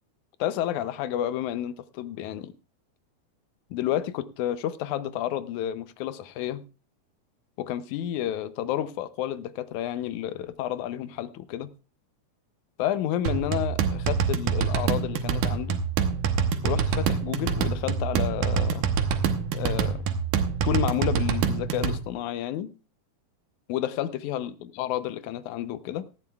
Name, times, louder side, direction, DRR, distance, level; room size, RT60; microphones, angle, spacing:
voice 1, 0.4-2.5 3.7-6.6 7.6-11.7 12.8-15.8 16.6-18.8 19.5-20.0 20.6-22.7 23.7-26.0, left 12 dB, 80° left, 2.1 m, -30 dB
sound 1, 13.3-22.0, right 6 dB, 85° right, 2.6 m, -26 dB
18.0 x 13.0 x 2.3 m
omnidirectional pair, 3.5 m